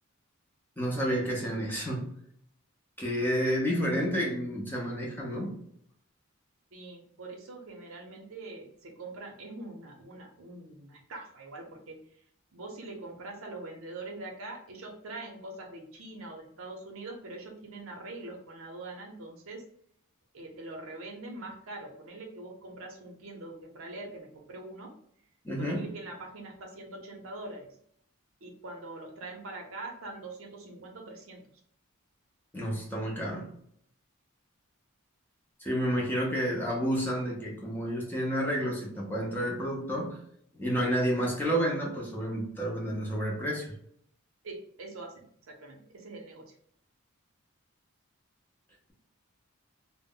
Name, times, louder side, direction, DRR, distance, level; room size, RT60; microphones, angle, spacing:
voice 1, 0.8-2.1 3.0-5.6 25.4-25.9 32.5-33.5 35.6-40.2 40.6-43.7, equal, 10° left, -3 dB, 0.6 m, -30 dB
voice 2, 6.7-12.0 12.5-19.6 20.3-24.9 25.6-27.7 28.4-31.4 44.4-46.5, right 2 dB, 70° right, 1 dB, 0.6 m, -43 dB
2.1 x 2.0 x 3.6 m, 0.66 s
head